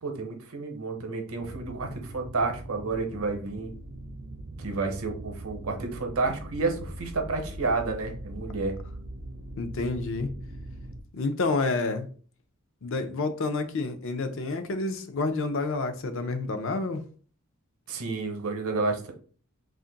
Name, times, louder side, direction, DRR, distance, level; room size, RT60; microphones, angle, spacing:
voice 1, 0.0-3.7 4.6-8.7 17.9-19.1, right 3 dB, 75° right, 0.8 m, -30 dB
sound 1, 1.4-11.0, right 1 dB, 45° right, 0.4 m, -41 dB
voice 2, 9.6-10.3 11.1-12.1 12.8-17.0, left 3 dB, 60° left, 0.5 m, -29 dB
2.5 x 2.5 x 3.8 m
head